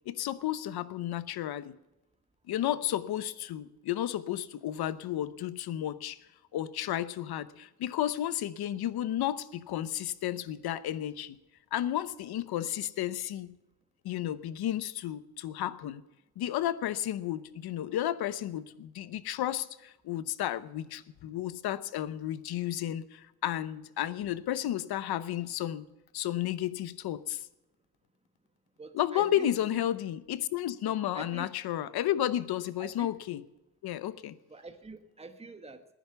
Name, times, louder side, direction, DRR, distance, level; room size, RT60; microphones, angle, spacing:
voice 1, 0.1-1.7 2.5-6.2 6.5-11.4 11.7-13.6 14.0-16.0 16.4-25.9 26.1-27.4 28.9-33.4 33.8-34.4, left 12 dB, 85° left, 16 dB, 0.8 m, -32 dB
voice 2, 28.8-29.8 31.1-31.5 32.8-33.1 34.5-35.8, right 3 dB, 15° right, 7 dB, 1.3 m, -45 dB
15.5 x 10.5 x 6.8 m, 0.95 s
cardioid pair, 65°, 37 cm